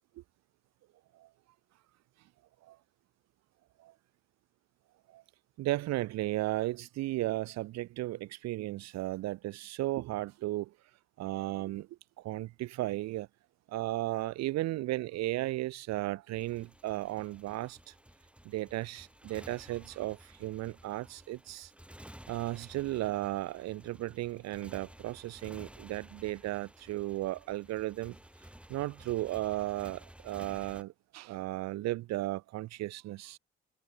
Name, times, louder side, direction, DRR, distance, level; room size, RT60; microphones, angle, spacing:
voice 1, 5.6-10.7 11.2-11.9 12.2-13.3 13.7-17.9 18.4-21.7 22.3-28.2 28.7-33.4, right 16 dB, 55° right, 0.7 m, -35 dB
Motorcycle, 16.3-30.8, equal, 5° right, 6.3 m, -54 dB
figure-of-eight pair, 40°, 32 cm